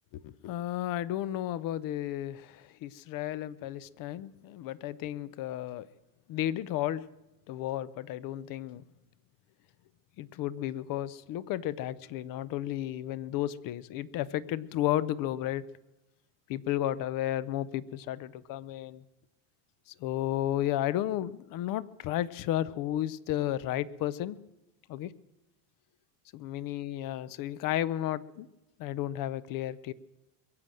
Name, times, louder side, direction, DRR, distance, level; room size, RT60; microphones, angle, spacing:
voice 1, 0.1-5.9 6.3-7.0 7.5-8.8 10.2-15.6 16.5-19.0 20.0-24.4 24.9-25.1 26.3-28.5 28.8-29.9, left 13 dB, 45° left, 19 dB, 0.5 m, -33 dB
22.0 x 7.6 x 7.6 m, 0.96 s
supercardioid pair, 130°, 49 cm